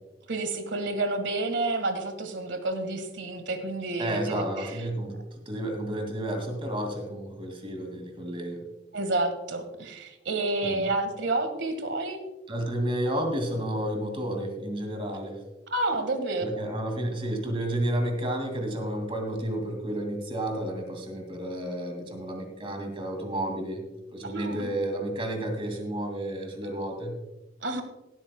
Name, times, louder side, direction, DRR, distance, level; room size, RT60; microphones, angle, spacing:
voice 1, 0.3-4.7 8.9-12.2 15.7-16.4 24.2-24.9 27.6-27.8, right 2 dB, 90° right, 8 dB, 1.6 m, -29 dB
voice 2, 4.0-5.2 5.5-8.6 10.6-10.8 12.5-15.4 16.4-23.8 24.1-27.2, right 1 dB, 30° right, 4 dB, 2.2 m, -31 dB
16.0 x 12.5 x 2.2 m, 1.0 s
head